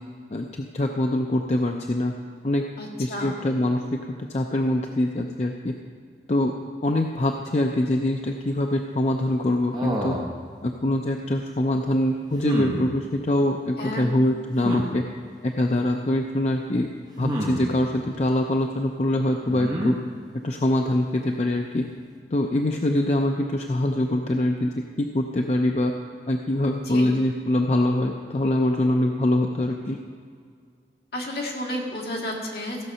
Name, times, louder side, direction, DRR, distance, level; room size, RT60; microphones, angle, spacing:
voice 1, 0.3-2.1 2.4-2.6 3.0-3.8 4.3-5.7 6.3-6.5 6.8-10.2 10.6-15.0 15.4-16.9 17.2-19.9 20.4-21.8 22.3-25.9 26.3-30.0, left 1 dB, 40° left, 3 dB, 0.5 m, -24 dB
voice 2, 2.8-3.3 13.8-14.1 26.8-27.1 31.1-32.8, left 1 dB, 60° left, -2 dB, 2.0 m, -31 dB
sound 1, 9.7-10.4 12.4-12.8 14.6-14.9 17.2-17.7 19.5-19.9, equal, 20° right, 1.2 m, -27 dB
15.0 x 6.6 x 5.6 m, 2.1 s
head